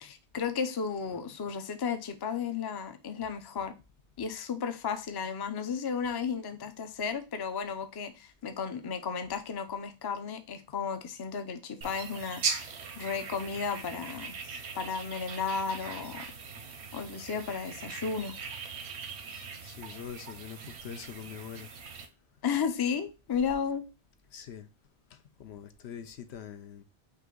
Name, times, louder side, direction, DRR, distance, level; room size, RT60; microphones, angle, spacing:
voice 1, 0.0-3.8 4.2-12.7 13.0-14.4 14.7-16.3 16.9-18.3 22.4-23.9, left 6 dB, 35° left, 0.4 m, -34 dB
sound 1, 11.8-22.1, right 5 dB, 85° right, 1.1 m, -40 dB
voice 2, 19.6-21.7 24.3-24.7 25.1-26.8, left 8 dB, 85° left, 0.9 m, -44 dB
5.5 x 2.6 x 3.7 m
omnidirectional pair, 1.1 m